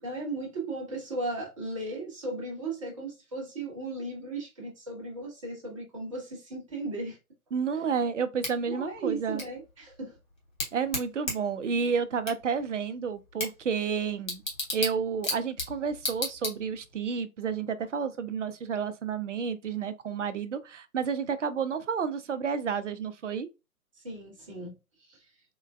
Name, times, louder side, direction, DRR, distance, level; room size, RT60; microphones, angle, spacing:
voice 1, 0.0-7.2 7.7-7.8 8.7-10.2 24.0-25.2, right 2 dB, 20° right, 0.8 m, -36 dB
voice 2, 7.5-9.4 10.7-14.4 14.7-23.5, right 6 dB, 55° right, 0.5 m, -30 dB
Bicycle / Tick, 8.4-17.0, left 2 dB, 30° left, 0.9 m, -37 dB
3.7 x 2.1 x 2.2 m
figure-of-eight pair, 140°, 45 cm